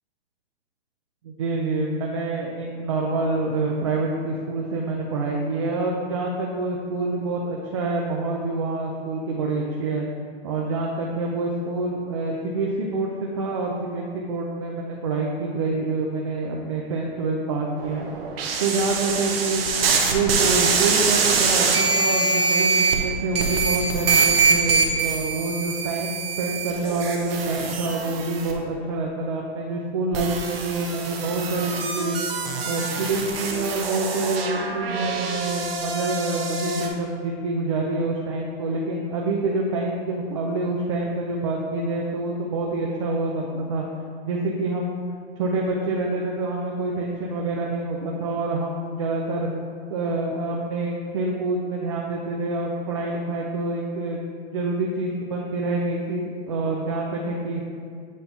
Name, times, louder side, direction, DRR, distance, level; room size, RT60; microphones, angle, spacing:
voice 1, 1.2-10.0 10.4-18.1 18.6-19.6 20.0-32.2 32.7-43.8 44.2-45.0 45.4-49.5 49.9-57.6, right 2 dB, 30° right, -2 dB, 0.4 m, -27 dB
sound 1, 17.8-23.1 23.3-28.5 30.1-36.9, right 4 dB, 65° right, 1.0 m, -24 dB
8.1 x 2.8 x 5.2 m, 2.1 s
hypercardioid pair, 160°, 32 cm